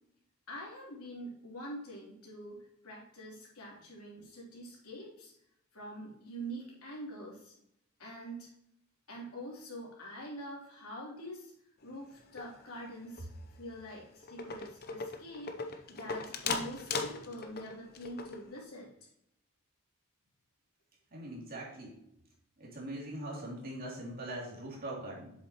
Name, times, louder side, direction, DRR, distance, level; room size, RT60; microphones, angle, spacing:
voice 1, 0.5-5.3 5.7-7.5 8.0-8.5 9.1-11.5 11.8-13.3 13.6-18.9, right 1 dB, 85° left, -4 dB, 3.3 m, -45 dB
sound 1, 12.2-12.9 13.1-13.4 13.9-14.0 14.2-18.6, left 4 dB, 45° left, 0.7 m, -38 dB
voice 2, 21.1-22.0 22.6-25.3, right 1 dB, 45° right, -4 dB, 2.8 m, -41 dB
8.0 x 7.2 x 3.0 m, 0.77 s
head